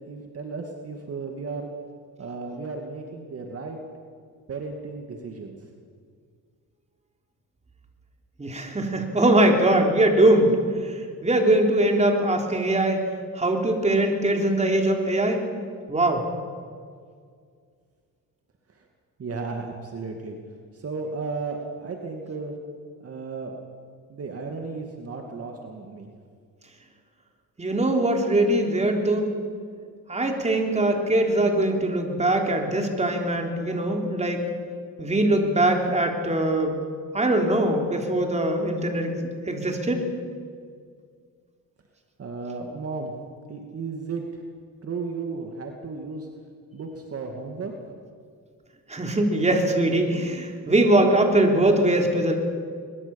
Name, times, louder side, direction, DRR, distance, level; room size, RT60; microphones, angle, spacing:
voice 1, 0.0-1.7 2.2-3.8 4.5-5.6 19.2-20.4 20.7-22.5 23.0-23.5 24.1-26.1 42.2-43.1 43.5-44.2 44.8-46.3 46.7-47.7, right 4 dB, 45° right, 2 dB, 2.4 m, -34 dB
voice 2, 8.4-13.0 13.4-15.5 15.9-16.3 27.6-29.3 30.1-34.4 35.0-36.8 37.1-39.2 39.5-40.0 48.9-52.4, right 1 dB, 20° right, 2 dB, 3.6 m, -22 dB
22.0 x 21.5 x 7.2 m, 2.1 s
cardioid pair, 110°, 34 cm